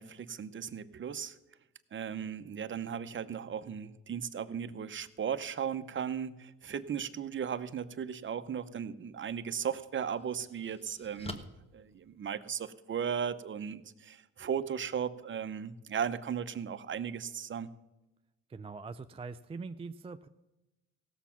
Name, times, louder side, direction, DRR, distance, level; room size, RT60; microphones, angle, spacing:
voice 1, 0.0-1.4 1.9-11.4 11.7-17.7, right 7 dB, 40° right, 12 dB, 0.8 m, -36 dB
sound 1, 9.0-9.2 9.7-12.8, left 2 dB, 20° left, 1.2 m, -48 dB
voice 2, 18.5-20.3, right 4 dB, 20° right, 9 dB, 0.4 m, -43 dB
16.5 x 7.1 x 5.8 m, 0.99 s
cardioid pair, 90°, 30 cm